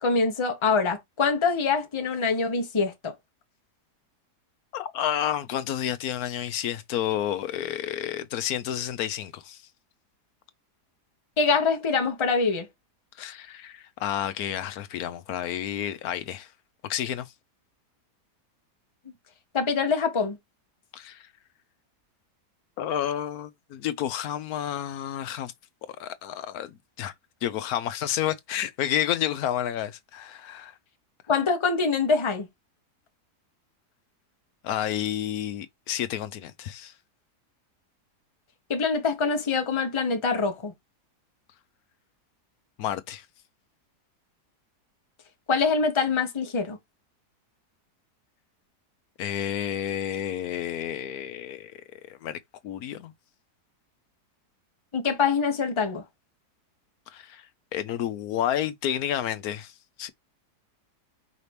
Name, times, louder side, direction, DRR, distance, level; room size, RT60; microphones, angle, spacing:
voice 1, 0.0-3.1 11.4-12.7 19.5-20.4 31.3-32.5 38.7-40.7 45.5-46.8 54.9-56.0, left 4 dB, 20° left, 0.9 m, -24 dB
voice 2, 4.7-9.6 13.2-16.5 16.9-17.3 20.9-21.2 22.8-25.5 26.0-27.1 27.4-30.7 34.6-36.9 42.8-43.2 49.2-51.7 52.1-52.4 52.6-53.1 57.1-57.4 57.7-59.7 60.0-60.1, left 10 dB, 70° left, 1.1 m, -30 dB
5.0 x 2.8 x 3.3 m
omnidirectional pair, 1.7 m